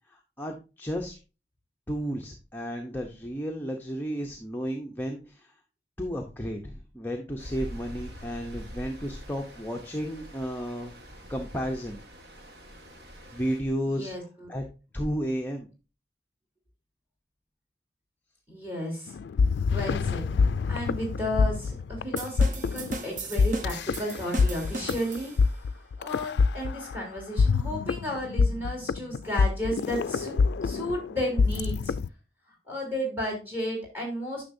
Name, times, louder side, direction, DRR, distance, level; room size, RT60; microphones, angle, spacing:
voice 1, 0.1-1.2 1.9-5.5 6.0-10.9 11.3-12.0 13.3-14.1 14.5-14.6 14.9-15.7, equal, 10° left, 1 dB, 0.6 m, -33 dB
Stream, 7.4-13.6, equal, 70° right, 1.3 m, -44 dB
voice 2, 13.9-14.5 18.5-19.2 19.7-20.3 20.7-25.3 26.0-30.4 30.6-31.9 32.7-34.4, equal, 10° right, 0 dB, 3.3 m, -33 dB
sound 1, 19.1-32.1, left 4 dB, 75° left, 0.3 m, -25 dB
sound 2, 22.2-25.6, right 2 dB, 45° right, 0.8 m, -37 dB
9.8 x 6.0 x 2.6 m, 0.31 s
head